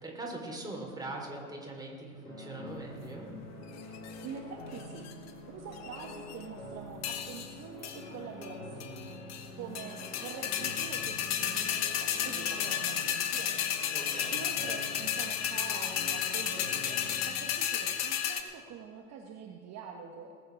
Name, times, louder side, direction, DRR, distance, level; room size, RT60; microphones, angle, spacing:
voice 1, 0.0-3.3 9.5-9.7 13.9-14.4, right 2 dB, 10° right, -1 dB, 3.8 m, -41 dB
sound 1, 2.2-17.3, left 1 dB, 85° left, 4.2 m, -46 dB
sound 2, 3.8-4.3 4.8-5.3 5.8-6.4 7.0-7.5 7.8-8.0 8.4-8.5 8.8-9.5 9.7-18.4, left 9 dB, 40° left, 1.3 m, -33 dB
voice 2, 4.2-13.7 14.0-20.3, right 6 dB, 35° right, 2 dB, 1.3 m, -46 dB
20.0 x 8.9 x 4.8 m, 2.3 s
hypercardioid pair, 85°, 43 cm